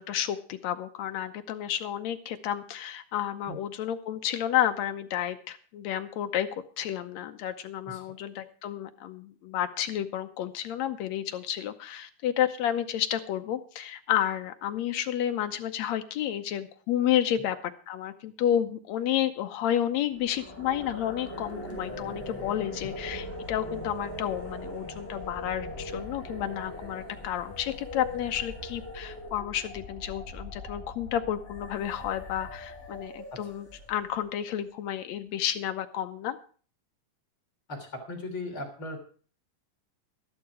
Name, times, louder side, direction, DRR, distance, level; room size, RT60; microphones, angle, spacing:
voice 1, 0.0-6.5 6.8-36.4, left 11 dB, 70° left, 9 dB, 1.7 m, -31 dB
sound 1, 20.1-34.2, left 1 dB, 5° left, 3.8 m, -41 dB
voice 2, 37.7-39.0, left 2 dB, 40° left, 2 dB, 3.8 m, -38 dB
13.0 x 12.0 x 4.8 m, 0.41 s
omnidirectional pair, 3.9 m